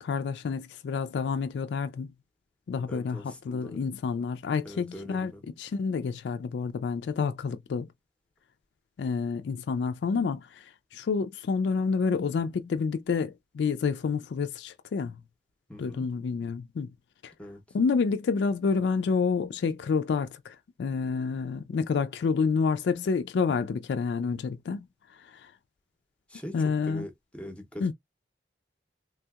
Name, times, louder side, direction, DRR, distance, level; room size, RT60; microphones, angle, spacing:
voice 1, 0.0-2.1 2.7-5.3 5.6-7.9 9.0-15.2 15.8-16.9 17.2-17.3 17.7-24.9 25.2-25.5 26.5-27.1 27.8-27.9, left 5 dB, 75° left, 0.3 m, -29 dB
voice 2, 2.9-3.8 4.6-5.4 15.7-16.0 17.4-17.6 26.3-27.9, equal, 5° left, 0.6 m, -42 dB
3.4 x 2.8 x 2.3 m
head